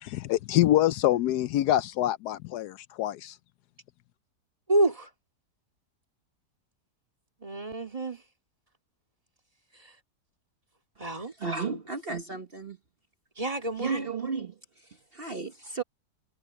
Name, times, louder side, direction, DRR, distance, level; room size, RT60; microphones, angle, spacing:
voice 1, 0.0-3.4, left 13 dB, 75° left, 1.1 m, -25 dB
voice 2, 4.7-5.1 7.4-8.2 11.0-11.3 13.4-14.0, right 2 dB, 20° right, 2.1 m, -28 dB
voice 3, 11.2-12.8 13.8-15.8, right 4 dB, 40° right, 1.3 m, -34 dB
omnidirectional pair, 1.8 m